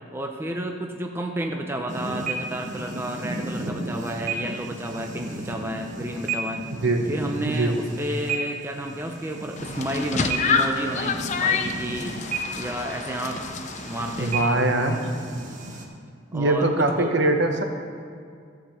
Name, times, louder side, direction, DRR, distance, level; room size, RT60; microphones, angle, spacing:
voice 1, 0.1-6.6 7.1-12.2 12.5-13.5 13.9-14.6 14.9-15.0 16.3-17.1, right 1 dB, 10° right, 2 dB, 0.6 m, -31 dB
sound 1, 1.9-15.8, right 3 dB, 40° right, 1.1 m, -34 dB
sound 2, 9.6-14.4, left 5 dB, 35° left, 0.5 m, -28 dB
voice 2, 14.2-15.0 16.3-17.6, right 2 dB, 60° right, 5 dB, 0.9 m, -22 dB
13.0 x 5.0 x 7.2 m, 2.2 s
head